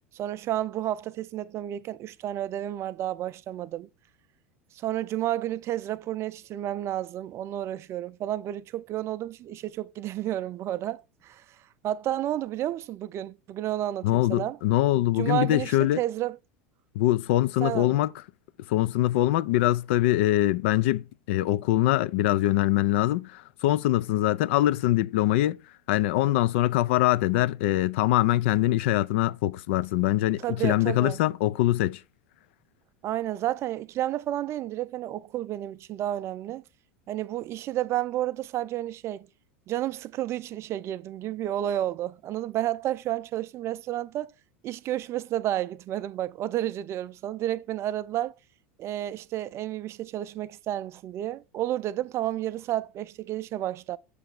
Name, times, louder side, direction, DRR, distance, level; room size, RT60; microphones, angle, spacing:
voice 1, 0.1-3.9 4.7-11.4 11.8-14.6 15.0-16.4 17.6-18.0 30.4-31.2 33.0-36.6 37.1-39.3 39.7-44.3 44.6-48.3 48.8-54.0, right 13 dB, 40° right, 0.4 m, -31 dB
voice 2, 14.0-16.0 17.0-18.1 18.7-25.6 25.9-32.0, left 15 dB, 65° left, 0.4 m, -23 dB
6.6 x 3.3 x 5.3 m
hypercardioid pair, 85°, 7 cm